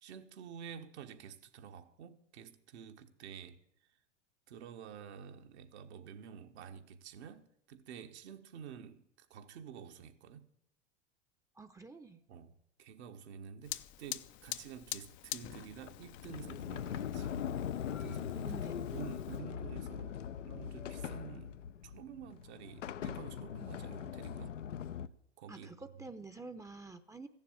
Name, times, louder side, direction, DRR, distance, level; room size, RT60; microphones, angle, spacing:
voice 1, 0.0-3.6 4.5-10.5 12.3-17.3 18.0-18.5 18.8-24.6 25.4-26.2, right 8 dB, 65° right, 1.3 m, -50 dB
voice 2, 11.5-12.2 18.4-18.7 25.5-27.3, right 3 dB, 10° right, 0.7 m, -48 dB
Fire, 13.6-19.4, left 15 dB, 35° left, 0.5 m, -46 dB
Sliding door, 15.9-25.1, left 8 dB, 85° left, 0.7 m, -41 dB
15.0 x 7.3 x 9.6 m
hypercardioid pair, 90°, 36 cm